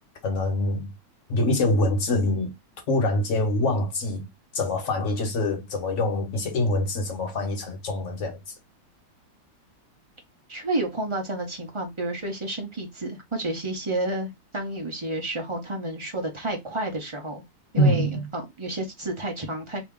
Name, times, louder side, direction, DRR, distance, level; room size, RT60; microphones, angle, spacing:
voice 1, 0.2-0.9 1.3-2.5 2.9-4.3 4.5-8.4 17.7-18.3, left 1 dB, 45° left, 1.3 m, -24 dB
voice 2, 10.5-17.4 17.7-19.8, right 2 dB, 35° right, 0.4 m, -30 dB
3.0 x 2.8 x 3.6 m
omnidirectional pair, 2.0 m